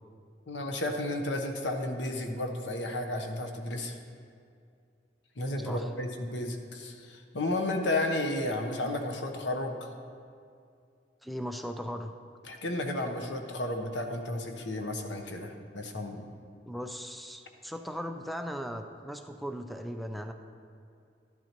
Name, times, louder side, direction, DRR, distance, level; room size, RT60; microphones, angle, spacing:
voice 1, 0.5-4.0 5.4-9.9 12.5-16.2, left 1 dB, 90° left, 4 dB, 0.9 m, -33 dB
voice 2, 5.6-5.9 11.2-12.1 16.6-20.3, equal, ahead, 6 dB, 0.4 m, -38 dB
12.0 x 11.0 x 3.0 m, 2.4 s
head